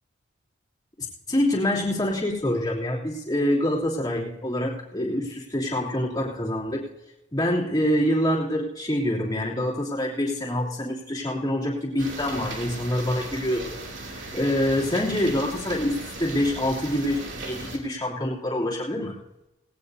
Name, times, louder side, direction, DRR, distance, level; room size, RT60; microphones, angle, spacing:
voice 1, 1.3-6.8 7.3-13.8 14.1-19.2, left 1 dB, 20° left, -4 dB, 3.0 m, -26 dB
sound 1, 12.0-17.8, right 2 dB, 65° right, 2.8 m, -37 dB
18.0 x 18.0 x 2.8 m, 0.97 s
head